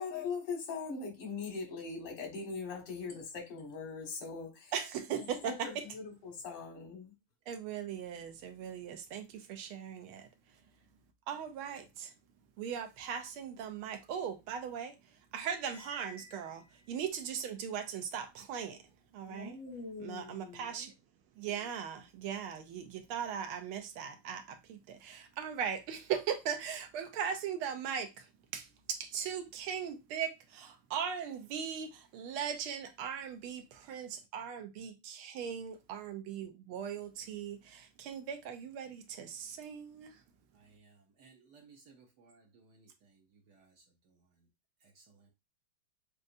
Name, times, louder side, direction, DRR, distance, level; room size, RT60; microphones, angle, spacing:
voice 1, 0.0-4.7 5.1-7.1 19.3-20.7, left 5 dB, 90° left, 2.3 m, -41 dB
voice 2, 4.7-5.9 7.5-10.3 11.3-12.1 12.6-18.8 19.1-19.6 20.0-20.9 21.4-40.2, right 8 dB, 80° right, 1.6 m, -39 dB
Cymbal, 15.6-17.1, left 2 dB, 65° left, 1.1 m, -54 dB
voice 3, 40.5-43.7 45.0-45.3, right 4 dB, 65° right, 1.1 m, -61 dB
6.5 x 2.4 x 2.5 m
omnidirectional pair, 2.4 m